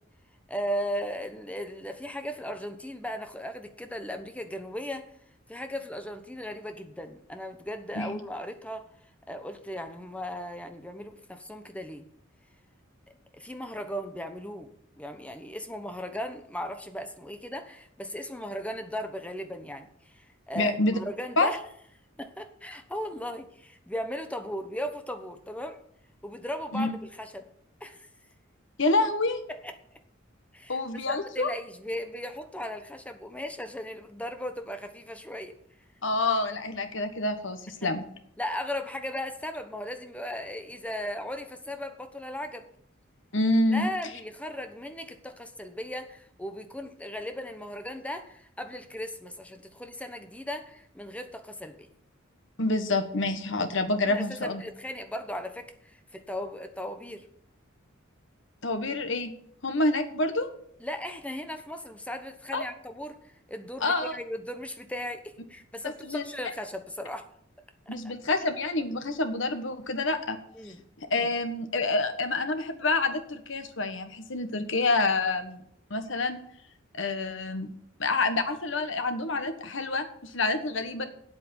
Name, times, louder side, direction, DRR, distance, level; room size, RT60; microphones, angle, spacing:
voice 1, 0.5-5.1 5.5-8.9 9.3-12.1 13.3-14.7 15.0-21.6 22.2-25.8 26.2-26.9 27.2-27.5 27.8-28.1 29.5-29.7 30.5-30.8 31.1-35.5 37.8-37.9 38.4-42.7 43.7-51.9 54.1-57.3 60.8-67.3 67.9-68.1 70.5-70.8, equal, 5° left, 7 dB, 1.1 m, -37 dB
voice 2, 20.5-21.0 21.4-21.5 26.7-26.9 28.8-29.4 30.7-31.5 36.0-38.1 43.3-43.9 52.6-54.6 58.6-59.3 59.6-60.5 62.5-62.6 63.8-64.2 65.8-66.2 67.9-70.4 71.0-75.6 75.9-76.4 76.9-77.7 78.0-81.1, left 2 dB, 65° left, 8 dB, 1.5 m, -27 dB
8.7 x 8.3 x 7.1 m, 0.68 s
head